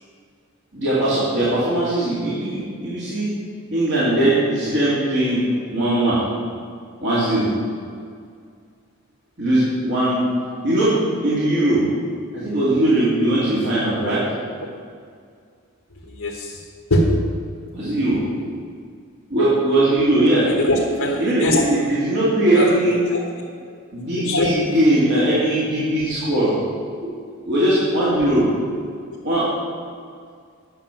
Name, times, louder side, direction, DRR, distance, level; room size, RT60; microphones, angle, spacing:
voice 1, 0.7-3.3 3.7-5.4 5.7-6.2 7.0-7.5 9.4-10.2 10.6-10.9 11.2-11.8 12.3-14.2 17.7-18.2 19.3-20.5 21.2-23.0 23.9-26.5 27.5-28.4 29.2-29.5, right 1 dB, 50° right, -9 dB, 2.9 m, -19 dB
voice 2, 16.1-16.6 16.9-17.1 20.4-21.6 22.5-23.2 24.1-24.5, left 1 dB, 90° left, -4 dB, 1.5 m, -21 dB
9.9 x 7.0 x 7.7 m, 2.1 s
head